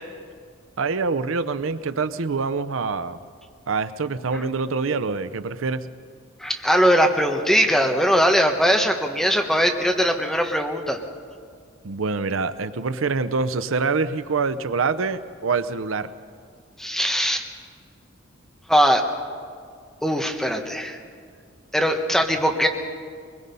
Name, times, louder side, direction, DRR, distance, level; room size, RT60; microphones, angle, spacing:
voice 1, 0.8-3.2 3.7-5.9 11.8-16.1, right 4 dB, 80° right, 13 dB, 0.7 m, -25 dB
voice 2, 6.4-11.0 16.8-17.4 18.7-19.0 20.0-21.0 21.7-22.7, equal, ahead, 3 dB, 1.3 m, -20 dB
23.0 x 21.5 x 5.4 m, 2.1 s
head